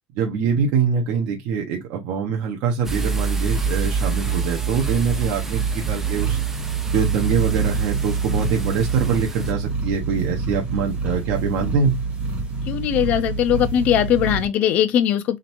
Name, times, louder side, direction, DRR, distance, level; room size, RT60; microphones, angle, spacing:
voice 1, 0.1-6.4 6.9-12.0, right 6 dB, 65° right, 1.1 m, -24 dB
sound 1, 2.8-9.5, right 5 dB, 10° right, 0.5 m, -27 dB
sound 2, 3.5-14.5, right 4 dB, 35° right, 2.4 m, -27 dB
voice 2, 12.7-15.4, left 10 dB, 45° left, 0.6 m, -20 dB
3.8 x 3.3 x 3.0 m
cardioid pair, 170°, 4 cm